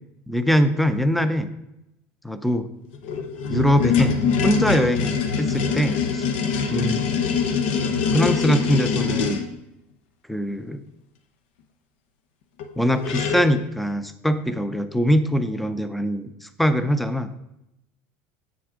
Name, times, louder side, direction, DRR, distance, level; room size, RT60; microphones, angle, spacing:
voice 1, 0.3-1.5 2.2-2.7 3.5-6.2 6.7-7.0 8.1-9.5 10.3-10.8 12.8-17.4, equal, ahead, 11 dB, 0.4 m, -22 dB
sound 1, 2.9-9.5 12.6-12.7 12.9-13.5, left 6 dB, 90° left, 1.0 m, -23 dB
8.1 x 6.2 x 4.9 m, 0.88 s
cardioid pair, 155°, 6 cm